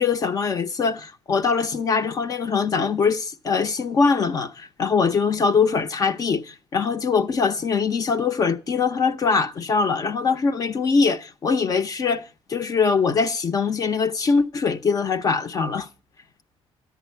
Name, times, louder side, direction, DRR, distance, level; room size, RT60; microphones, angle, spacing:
voice 1, 0.0-15.9, left 5 dB, 35° left, 0.8 m, -22 dB
14.5 x 10.5 x 4.5 m
cardioid pair, 175°, 11 cm